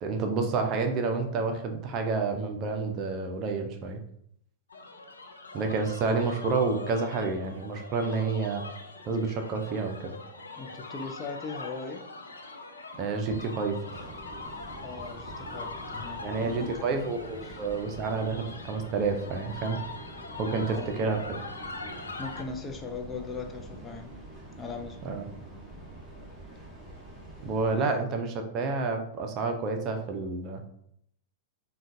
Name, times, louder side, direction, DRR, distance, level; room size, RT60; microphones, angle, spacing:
voice 1, 0.0-4.0 5.5-8.6 9.1-10.1 13.0-13.8 16.2-19.8 20.4-21.2 25.0-25.3 27.4-30.6, right 4 dB, 40° right, 4 dB, 0.5 m, -29 dB
sound 1, 4.7-22.4, left 3 dB, 85° left, 0.4 m, -42 dB
voice 2, 10.6-12.1 14.8-17.0 17.4-17.6 20.7-21.0 22.2-24.2 24.6-25.0 27.8-28.1, left 4 dB, 20° left, 4 dB, 0.4 m, -39 dB
Train, 13.8-27.8, right 1 dB, ahead, 1.4 m, -46 dB
3.7 x 2.3 x 2.5 m, 0.70 s
hypercardioid pair, 100°, 0 cm